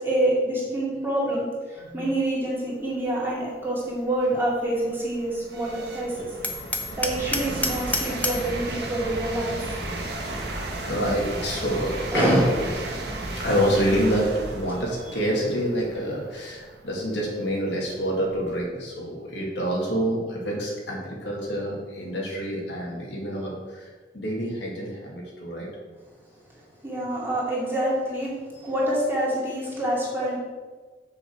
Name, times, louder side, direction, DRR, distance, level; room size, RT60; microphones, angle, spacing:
voice 1, 0.0-6.3 7.0-9.6 12.1-13.0 26.8-28.3 28.6-30.4, right 1 dB, 15° right, -6 dB, 2.4 m, -26 dB
voice 2, 1.8-2.1 10.3-12.4 13.3-23.9 24.1-25.7, equal, 75° left, -3 dB, 2.2 m, -27 dB
sound 1, 3.1-3.2 3.8-18.6, right 2 dB, 60° right, 1.4 m, -34 dB
Hammer, 6.4-8.5, left 2 dB, 10° left, 0.6 m, -29 dB
7.3 x 6.5 x 4.6 m, 1.4 s
head